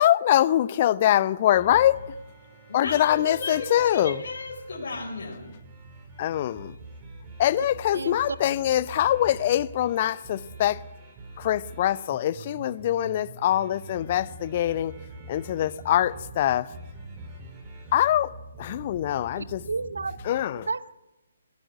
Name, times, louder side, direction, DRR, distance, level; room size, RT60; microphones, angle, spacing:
voice 1, 0.0-2.0 2.7-4.2 6.2-6.7 7.4-10.8 11.4-14.9 15.3-16.7 17.9-18.3 18.6-19.6 20.3-20.7, left 12 dB, 35° left, 0.7 m, -23 dB
sound 1, 1.5-20.4, right 2 dB, 20° right, 4.6 m, -45 dB
voice 2, 2.7-5.5, left 3 dB, 50° left, 4.0 m, -34 dB
voice 3, 7.9-8.4 19.3-20.2 20.5-20.9, right 4 dB, 65° right, 0.7 m, -32 dB
20.5 x 17.5 x 9.7 m
figure-of-eight pair, 135°, 0 cm